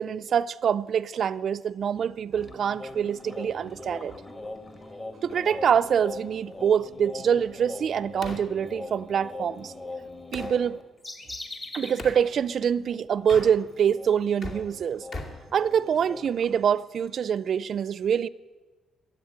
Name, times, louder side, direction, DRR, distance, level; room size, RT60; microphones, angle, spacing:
voice 1, 0.0-4.1 5.2-9.7 10.3-10.8 11.7-15.1 15.5-18.3, right 8 dB, 60° right, 0.4 m, -25 dB
sound 1, 2.3-12.0 12.3-12.5 12.9-16.6, left 2 dB, 30° left, 2.0 m, -41 dB
sound 2, 5.3-10.6 12.0-12.2 13.2-13.9 14.2-16.2, left 2 dB, 55° left, 2.5 m, -42 dB
13.0 x 8.7 x 9.4 m
cardioid pair, 90°, 0 cm